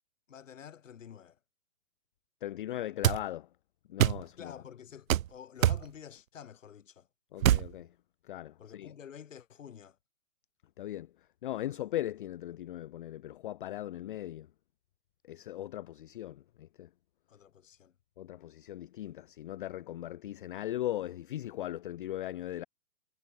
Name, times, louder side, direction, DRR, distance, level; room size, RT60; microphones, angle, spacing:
voice 1, 0.3-1.4 4.3-7.1 8.6-10.0 17.3-17.9, left 8 dB, 70° left, 3.2 m, -49 dB
voice 2, 2.4-3.5 3.9-4.5 7.3-7.9 8.3-8.9 10.8-11.1 11.4-14.5 15.3-16.9 18.2-22.6, left 13 dB, 40° left, 0.4 m, -38 dB
sound 1, 3.0-3.2 4.0-4.2 5.1-5.3 5.6-5.8 7.4-7.7, right 12 dB, 80° right, 0.5 m, -24 dB
hypercardioid pair, 130°, 40 cm